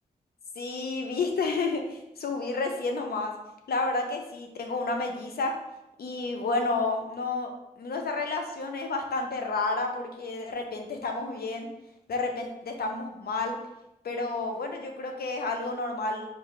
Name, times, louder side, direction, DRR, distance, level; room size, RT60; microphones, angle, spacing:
voice 1, 0.6-3.3 3.7-5.6 6.0-11.7 12.1-13.6 14.0-16.3, left 3 dB, 90° left, 3 dB, 0.5 m, -30 dB
4.7 x 2.4 x 3.0 m, 0.89 s
wide cardioid pair, 65°, 16 cm